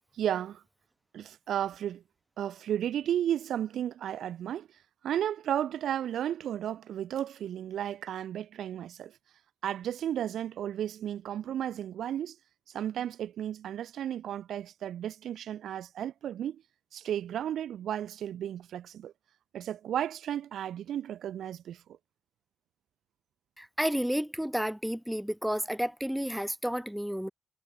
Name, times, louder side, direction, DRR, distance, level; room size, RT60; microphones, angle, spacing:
voice 1, 0.2-0.6 1.1-2.0 2.4-4.7 5.0-9.1 9.6-12.4 12.7-16.6 16.9-19.1 19.5-21.8, right 10 dB, 80° right, 4.0 m, -33 dB
voice 2, 23.6-27.3, equal, 5° right, 1.9 m, -31 dB
supercardioid pair, 55°, 0 cm